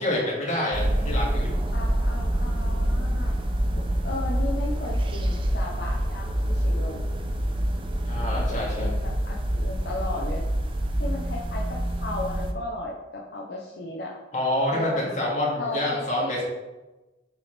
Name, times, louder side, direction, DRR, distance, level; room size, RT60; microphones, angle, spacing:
voice 1, 0.0-1.5 8.0-8.9 14.3-16.4, left 1 dB, 40° left, -5 dB, 2.0 m, -27 dB
sound 1, 0.7-12.5, right 1 dB, 30° right, 0.5 m, -26 dB
voice 2, 1.7-3.3 4.0-7.0 7.3-7.4 8.3-10.4 11.0-14.1 14.7-15.1 15.6-16.4, left 2 dB, 70° left, -3 dB, 0.7 m, -35 dB
6.8 x 4.3 x 3.3 m, 1.1 s
head